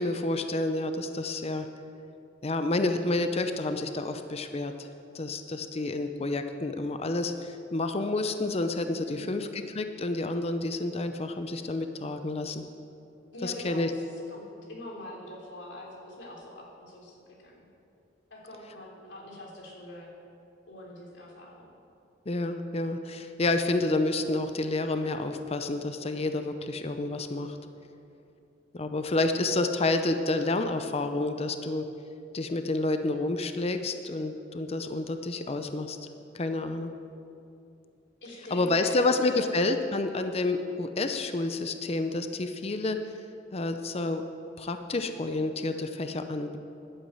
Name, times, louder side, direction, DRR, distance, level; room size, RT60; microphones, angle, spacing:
voice 1, 0.0-1.7 2.4-4.9 5.1-12.6 13.4-13.9 22.3-27.6 28.7-31.9 32.3-36.0 36.3-36.9 38.5-43.0 43.5-44.2 44.6-46.6, left 2 dB, 35° left, 8 dB, 0.6 m, -29 dB
voice 2, 9.1-9.4 13.3-13.9 14.3-14.4 14.7-17.7 18.3-20.1 20.7-21.7 38.2-39.5 40.0-40.2, left 1 dB, 80° left, -2 dB, 3.3 m, -43 dB
11.5 x 9.5 x 8.0 m, 2.6 s
head